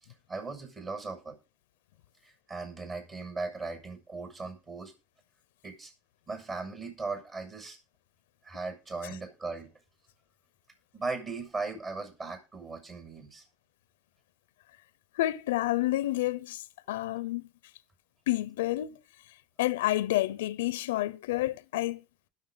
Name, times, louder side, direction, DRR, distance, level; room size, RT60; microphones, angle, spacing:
voice 1, 0.3-1.4 2.2-4.9 5.6-5.9 6.3-7.8 8.4-9.7 10.9-13.4, right 3 dB, 30° right, 6.8 m, -38 dB
voice 2, 15.2-17.4 18.3-19.0 19.6-22.0, left 16 dB, 90° left, 0.6 m, -29 dB
19.5 x 7.0 x 3.9 m
supercardioid pair, 100°, 0 cm